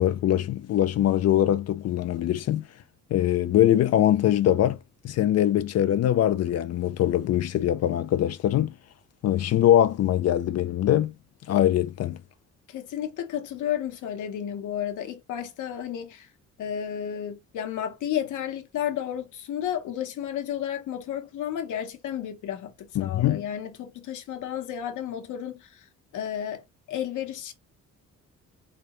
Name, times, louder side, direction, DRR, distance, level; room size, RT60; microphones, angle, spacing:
voice 1, 0.0-2.7 3.1-4.8 5.0-8.7 9.2-11.1 11.5-12.2 23.0-23.4, left 12 dB, 55° left, 0.4 m, -22 dB
voice 2, 12.7-16.3 16.6-25.8 26.1-27.5, left 10 dB, 80° left, 1.0 m, -32 dB
3.7 x 3.4 x 3.0 m
cardioid pair, 90°, 30 cm